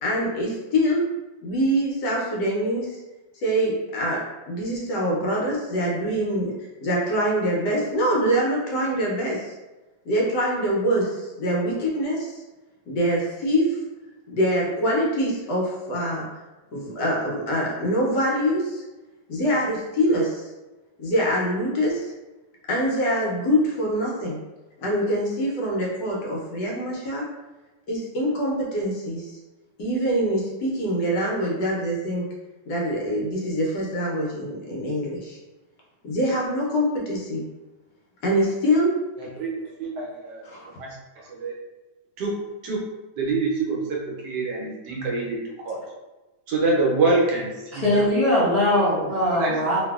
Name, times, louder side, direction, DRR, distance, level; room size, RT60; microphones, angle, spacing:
voice 1, 0.0-1.1 1.4-3.0 3.4-4.2 4.5-6.5 6.8-9.5 10.0-12.4 12.9-13.8 14.3-16.3 16.7-18.8 19.3-20.5 21.0-22.1 22.7-24.4 24.8-27.3 27.9-29.4 29.8-32.3 32.7-35.4 36.0-37.4 38.2-38.9 40.4-40.7, equal, 70° left, -3 dB, 1.3 m, -24 dB
voice 2, 39.8-40.4 40.8-40.9 41.3-41.5 42.2-42.4 42.6-42.9 43.2-45.8 46.5-48.1 49.3-49.6, right 3 dB, 70° right, -2 dB, 1.2 m, -25 dB
voice 3, 47.7-49.8, left 1 dB, 50° left, -11 dB, 0.4 m, -21 dB
3.0 x 2.6 x 2.3 m, 1.1 s
omnidirectional pair, 2.0 m